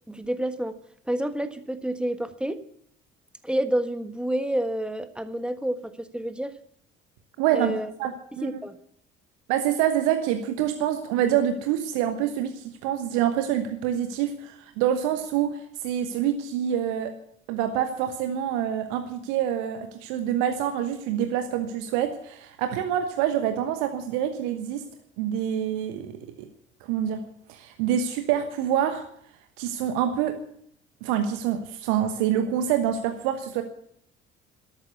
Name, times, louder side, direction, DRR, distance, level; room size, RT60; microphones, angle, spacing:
voice 1, 0.1-0.7 1.0-2.6 3.4-6.5 7.5-7.9 8.4-8.8, right 1 dB, 5° right, 11 dB, 1.5 m, -29 dB
voice 2, 7.4-7.7 8.0-8.5 9.5-17.1 17.5-24.8 25.2-26.5 26.8-27.2 27.5-29.1 29.6-30.4 31.0-33.6, right 10 dB, 65° right, 8 dB, 1.3 m, -26 dB
13.0 x 13.0 x 8.3 m, 0.68 s
figure-of-eight pair, 50°, 32 cm